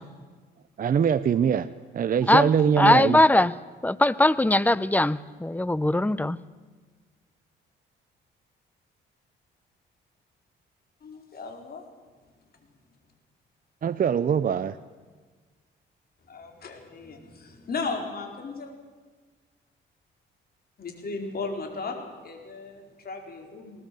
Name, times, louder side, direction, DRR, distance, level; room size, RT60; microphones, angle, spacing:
voice 1, 0.8-1.7 1.9-3.2 13.8-14.8, right 7 dB, 45° right, 12 dB, 0.7 m, -23 dB
voice 2, 2.8-3.5 3.8-6.4, left 1 dB, 10° left, 18 dB, 0.7 m, -20 dB
voice 3, 11.0-11.8 16.3-18.7 20.8-23.9, left 4 dB, 50° left, 3 dB, 4.4 m, -36 dB
19.5 x 19.5 x 7.7 m, 1.4 s
cardioid pair, 90°, 20 cm